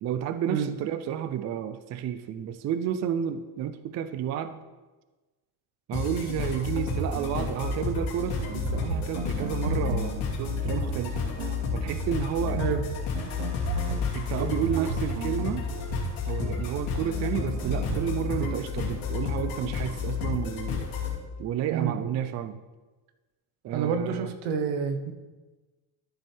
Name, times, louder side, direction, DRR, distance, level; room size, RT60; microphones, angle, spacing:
voice 1, 0.0-4.6 5.9-11.2 11.7-12.6 14.1-15.7 16.3-20.9 21.4-22.6 23.6-24.3, right 9 dB, 35° right, 11 dB, 0.4 m, -31 dB
sound 1, 5.9-21.2, left 6 dB, 80° left, 2.8 m, -31 dB
sound 2, 6.3-18.6, right 4 dB, 65° right, 1.0 m, -35 dB
voice 2, 23.7-25.1, right 6 dB, 85° right, 7 dB, 1.2 m, -28 dB
13.5 x 6.8 x 3.4 m, 1.2 s
cardioid pair, 150°, 48 cm